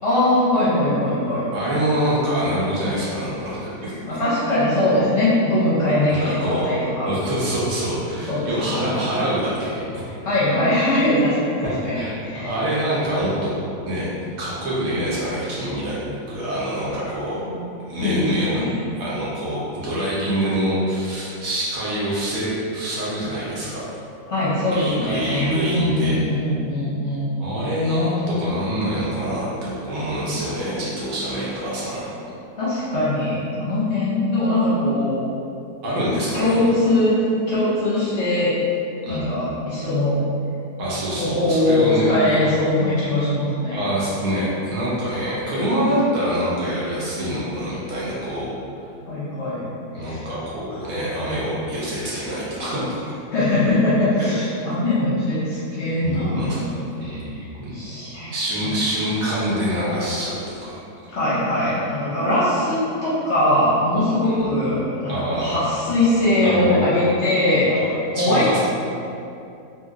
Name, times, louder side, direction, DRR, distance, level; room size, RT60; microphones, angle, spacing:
voice 1, 0.0-1.5 4.0-7.1 8.3-9.2 10.2-12.5 17.4-17.6 18.0-18.8 24.3-27.3 32.6-35.2 36.3-37.1 37.5-38.5 39.1-40.2 41.2-43.8 49.0-49.7 50.0-50.2 51.4-51.5 53.3-56.8 57.4-57.5 57.7-58.3 61.1-67.7 68.1-68.6, left 1 dB, 55° left, -11 dB, 0.8 m, -21 dB
voice 2, 1.5-3.9 6.1-6.7 7.0-10.1 11.9-13.5 13.8-14.1 14.4-16.0 16.3-17.4 17.8-18.6 18.9-23.8 24.6-26.2 27.4-32.1 35.8-36.7 39.1-39.3 40.8-42.6 43.7-48.5 49.9-53.1 54.2-54.3 56.0-56.6 57.0-57.7 58.3-60.8 64.2-64.5 65.1-65.6 66.4-66.8 67.7-68.6, equal, 65° right, -8 dB, 1.0 m, -25 dB
2.8 x 2.8 x 2.4 m, 2.6 s
omnidirectional pair, 1.7 m